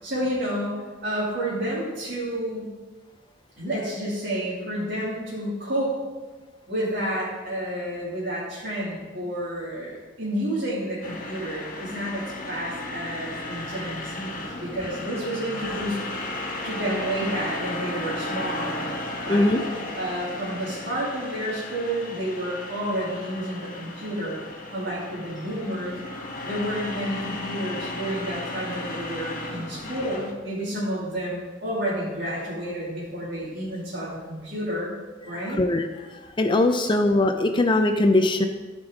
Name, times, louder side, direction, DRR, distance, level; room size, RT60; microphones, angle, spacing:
voice 1, 0.0-2.7 3.6-5.9 6.7-16.0 16.6-18.9 19.2-19.5 19.9-24.4 24.7-26.0 26.4-34.9 35.2-35.6 36.8-36.9, right 1 dB, 60° right, -9 dB, 2.5 m, -30 dB
sound 1, 11.0-30.3, left 2 dB, 45° left, 1.3 m, -35 dB
voice 2, 19.3-19.6 35.5-35.9 36.4-38.5, left 2 dB, 25° left, 6 dB, 0.5 m, -20 dB
14.0 x 5.3 x 3.7 m, 1.3 s
head